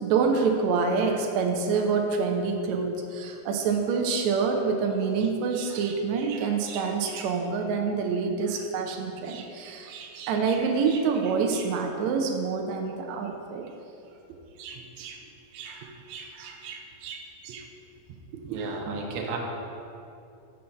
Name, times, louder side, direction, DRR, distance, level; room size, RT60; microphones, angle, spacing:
voice 1, 0.0-13.6 14.6-15.2 15.5-17.7 18.3-18.8 19.2-19.3, right 5 dB, 85° right, 2 dB, 1.6 m, -27 dB
voice 2, 18.5-19.4, right 4 dB, 65° right, 0 dB, 2.0 m, -32 dB
7.0 x 5.7 x 6.5 m, 2.7 s
omnidirectional pair, 4.0 m